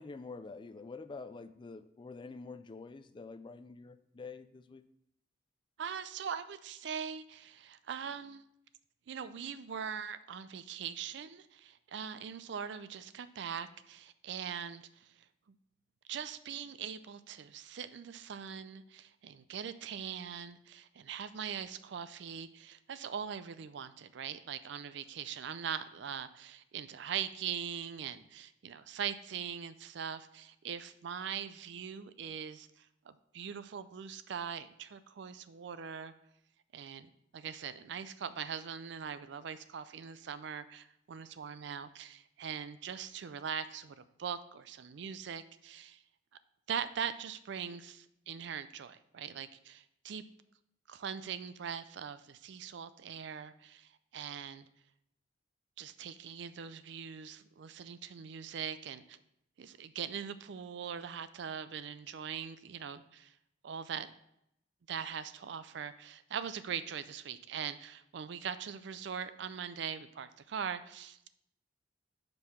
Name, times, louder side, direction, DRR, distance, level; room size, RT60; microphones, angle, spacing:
voice 1, 0.0-4.8, left 4 dB, 25° left, 11 dB, 0.3 m, -47 dB
voice 2, 5.8-8.4 9.1-15.2 16.1-36.1 36.7-46.0 46.7-50.2 50.9-54.7 55.8-59.2 59.6-63.3 63.6-64.1 64.9-71.3, right 7 dB, 65° right, 13 dB, 0.4 m, -41 dB
5.3 x 4.7 x 5.6 m, 0.77 s
head